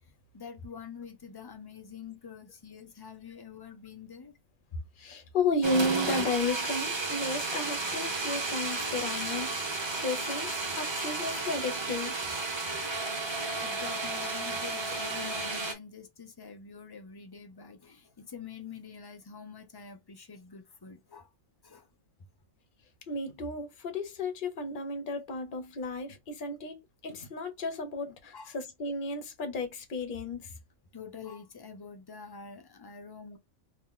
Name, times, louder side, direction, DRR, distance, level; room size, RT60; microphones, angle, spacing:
voice 1, 0.3-4.3 13.6-21.3 21.6-21.9 28.3-28.5 30.9-33.4, left 6 dB, 25° left, 0.5 m, -46 dB
voice 2, 5.0-9.6 10.0-12.2 23.1-30.5, left 2 dB, 45° left, 1.1 m, -33 dB
sound 1, 5.6-15.7, right 3 dB, 25° right, 0.7 m, -33 dB
2.9 x 2.9 x 3.7 m
omnidirectional pair, 1.3 m